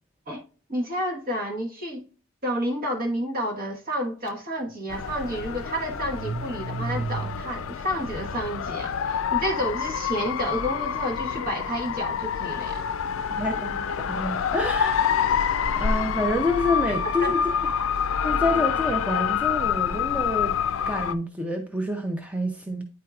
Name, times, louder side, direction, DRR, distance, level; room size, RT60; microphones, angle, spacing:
voice 1, 0.7-2.1 2.4-12.9 17.2-17.3, equal, 45° right, 1.3 m, -30 dB
Car / Engine starting, 4.3-4.4 4.7-9.9, right 4 dB, 70° right, 0.4 m, -37 dB
sound 1, 4.9-21.1, left 7 dB, 75° left, 0.4 m, -27 dB
voice 2, 13.3-17.4 18.2-20.6 20.9-22.8, left 1 dB, 5° right, 0.5 m, -28 dB
9.4 x 4.4 x 2.3 m
head